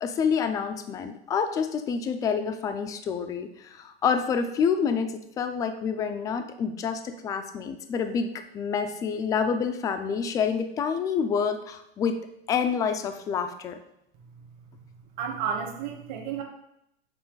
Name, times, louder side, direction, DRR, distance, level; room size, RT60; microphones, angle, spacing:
voice 1, 0.0-12.2 12.5-13.8, left 6 dB, 10° left, 8 dB, 0.3 m, -28 dB
voice 2, 15.2-16.4, right 7 dB, 45° right, 2 dB, 1.2 m, -31 dB
7.2 x 4.2 x 3.8 m, 0.80 s
hypercardioid pair, 125°, 30 cm